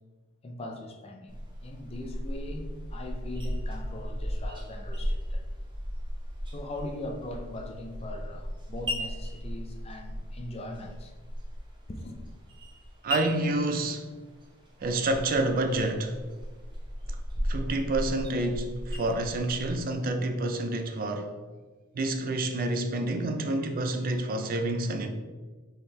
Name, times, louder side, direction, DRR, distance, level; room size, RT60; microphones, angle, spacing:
voice 1, 0.4-5.4 6.5-11.1 11.9-12.2, left 1 dB, 30° left, 0.5 m, -40 dB
sound 1, 1.3-19.8, equal, 20° right, 0.8 m, -36 dB
voice 2, 13.0-14.1 14.8-16.2 17.1-17.2 17.4-21.3 21.9-25.1, right 2 dB, 40° right, 0.4 m, -28 dB
4.4 x 3.4 x 3.2 m
head